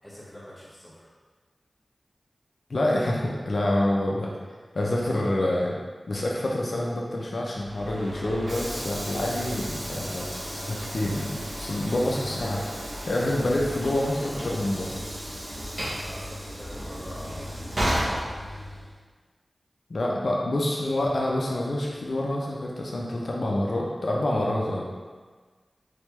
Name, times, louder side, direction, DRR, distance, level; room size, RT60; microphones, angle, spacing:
voice 1, 0.0-1.1 16.1-18.4, equal, 10° left, -7 dB, 1.2 m, -45 dB
voice 2, 2.7-4.3 4.7-5.7 6.1-12.6 13.1-14.9 19.9-24.9, left 1 dB, 75° left, -3 dB, 0.5 m, -27 dB
Train / Sliding door, 7.6-19.0, equal, 55° right, 1.0 m, -33 dB
3.6 x 3.3 x 3.1 m, 1.4 s
wide cardioid pair, 60°, 0 cm